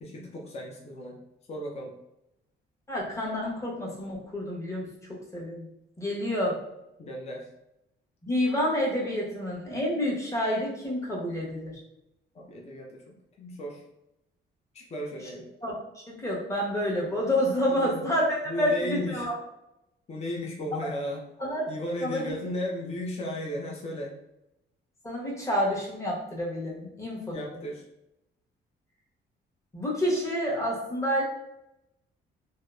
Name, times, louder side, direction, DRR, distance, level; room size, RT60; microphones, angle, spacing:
voice 1, 0.0-1.2 1.5-1.9 7.0-7.5 12.3-13.0 13.4-13.8 14.7-15.5 17.7-18.1 18.5-19.3 20.1-21.2 21.7-24.1 27.3-27.8, left 1 dB, 35° left, -1 dB, 0.5 m, -35 dB
voice 2, 2.9-5.6 6.0-6.6 8.2-11.8 15.6-19.3 20.8-20.9 21.4-21.7 22.0-22.3 25.0-27.4 29.7-31.2, equal, 15° left, -4 dB, 0.9 m, -29 dB
2.7 x 2.0 x 2.3 m, 0.88 s
cardioid pair, 90°, 20 cm